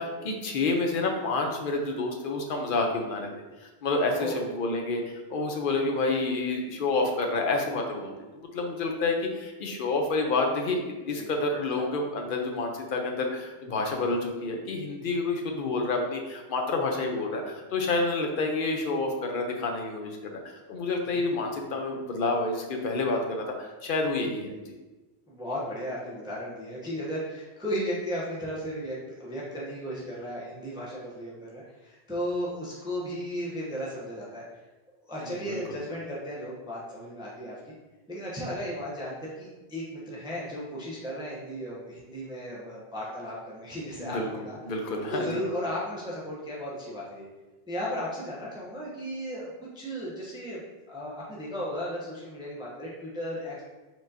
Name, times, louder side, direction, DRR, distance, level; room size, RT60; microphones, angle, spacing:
voice 1, 0.0-3.3 3.6-24.7 35.2-35.6 44.0-44.3 44.6-45.4, left 3 dB, 60° left, 2 dB, 0.8 m, -29 dB
voice 2, 25.3-34.4 35.1-37.6 38.1-44.6 45.1-47.3 47.7-50.6 50.9-53.6, equal, 5° right, -6 dB, 0.7 m, -35 dB
4.6 x 3.8 x 2.7 m, 1.2 s
omnidirectional pair, 1.0 m